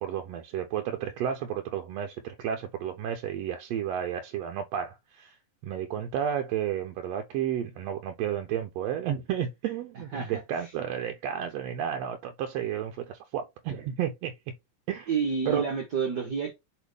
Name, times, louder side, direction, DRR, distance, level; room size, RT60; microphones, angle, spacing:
voice 1, 0.0-5.4 5.6-14.3 14.9-15.1 15.5-15.6, right 9 dB, 75° right, 1.7 m, -32 dB
voice 2, 10.1-10.7 15.1-16.5, right 5 dB, 55° right, 1.2 m, -30 dB
7.1 x 3.9 x 3.5 m
omnidirectional pair, 3.4 m